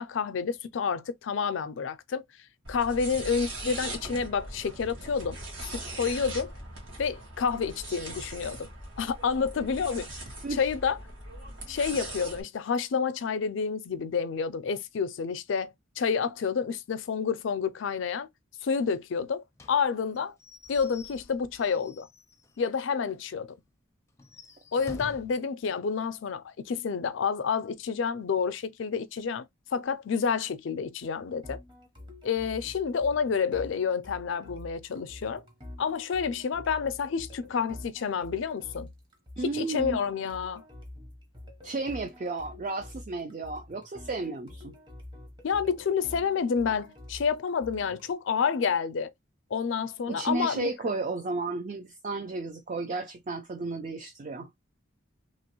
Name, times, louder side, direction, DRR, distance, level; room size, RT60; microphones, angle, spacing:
voice 1, 0.0-2.2 2.7-5.4 5.7-6.5 7.0-8.7 9.0-10.1 10.5-11.0 11.7-18.3 18.6-20.3 20.7-22.1 22.6-23.6 24.7-29.4 29.7-31.6 32.2-35.4 35.8-38.9 39.4-40.6 45.4-49.1 49.5-50.7, left 6 dB, 70° left, 0.4 m, -29 dB
sound 1, 2.6-12.4, right 1 dB, 75° right, 1.7 m, -40 dB
Slam / Squeak / Wood, 19.6-22.8 23.1-23.2 23.5-23.6 24.1-25.4, left 2 dB, 15° left, 0.5 m, -48 dB
sound 2, 31.4-48.1, left 1 dB, 25° right, 0.9 m, -47 dB
voice 2, 39.4-40.0 41.6-44.8 50.1-54.5, right 3 dB, 40° right, 0.4 m, -33 dB
3.0 x 2.9 x 2.9 m
head